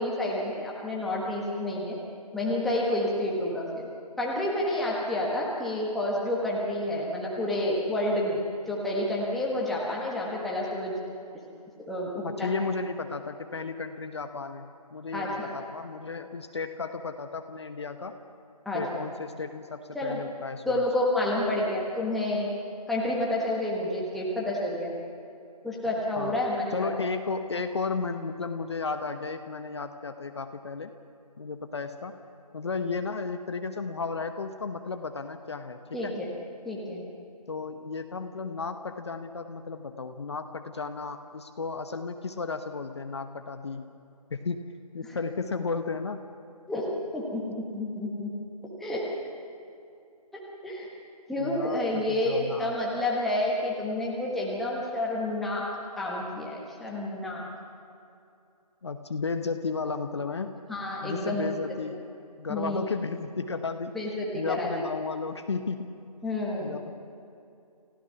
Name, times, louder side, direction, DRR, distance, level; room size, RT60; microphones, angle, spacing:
voice 1, 0.0-2.0 2.3-3.9 4.2-8.4 8.7-10.9 11.9-12.6 15.1-15.5 18.6-19.1 19.9-20.2 20.6-22.5 22.9-24.9 25.6-26.9 35.9-36.3 36.6-37.1 46.7-46.9 47.1-48.3 48.8-49.0 50.6-50.9 51.3-55.7 56.0-57.4 60.7-61.6 61.8-62.0 62.5-62.8 63.9-64.7 66.2-66.8, left 1 dB, ahead, -5 dB, 1.4 m, -29 dB
voice 2, 12.2-18.2 18.7-20.8 26.2-26.4 26.7-30.9 31.4-32.2 32.5-36.2 37.5-43.9 44.3-46.3 51.4-51.8 52.1-52.7 58.8-60.5 61.0-62.0 62.4-63.9 64.3-66.0 66.6-66.9, left 4 dB, 45° left, 7 dB, 1.0 m, -34 dB
29.5 x 15.5 x 5.8 m, 2.5 s
figure-of-eight pair, 155°, 20 cm